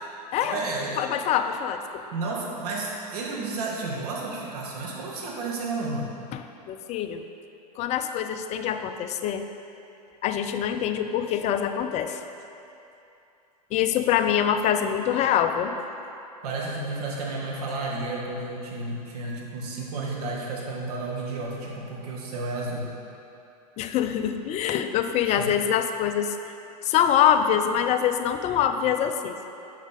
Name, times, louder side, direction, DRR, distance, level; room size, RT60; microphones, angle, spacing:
voice 1, 0.4-1.0 2.1-6.1 16.4-22.9 25.3-25.5, right 3 dB, 65° right, -3 dB, 1.6 m, -32 dB
voice 2, 1.0-1.8 6.3-7.2 7.8-9.5 10.2-12.2 13.7-15.7 23.8-26.4 26.8-29.5, left 9 dB, 30° left, 8 dB, 0.4 m, -24 dB
7.1 x 6.2 x 3.9 m, 2.8 s
hypercardioid pair, 100°, 21 cm